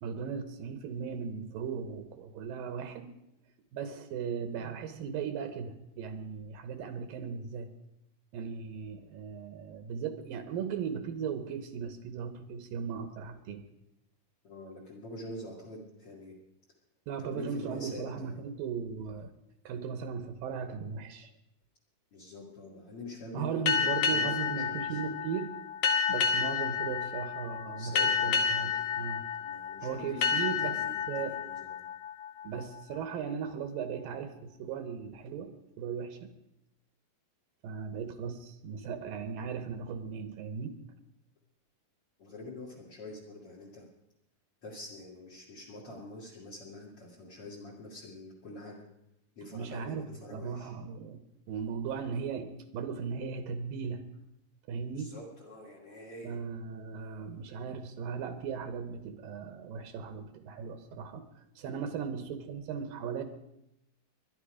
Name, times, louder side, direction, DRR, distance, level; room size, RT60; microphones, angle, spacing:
voice 1, 0.0-3.1 3.7-7.7 8.3-13.6 17.1-19.3 19.6-21.3 23.3-25.6 26.1-29.3 29.8-30.8 31.1-31.4 32.4-36.3 37.6-40.8 49.5-51.2 51.5-54.0 54.7-55.1 56.2-63.2, right 6 dB, 75° right, 9 dB, 2.7 m, -37 dB
voice 2, 14.4-16.3 17.2-18.4 22.1-25.0 27.8-29.1 29.4-31.9 42.2-43.9 44.6-48.8 49.4-50.7 54.9-56.4 61.9-62.1, left 2 dB, 45° left, 0 dB, 2.8 m, -46 dB
sound 1, 23.7-32.9, left 6 dB, 70° left, 1.4 m, -31 dB
21.0 x 11.5 x 5.0 m, 0.82 s
omnidirectional pair, 4.2 m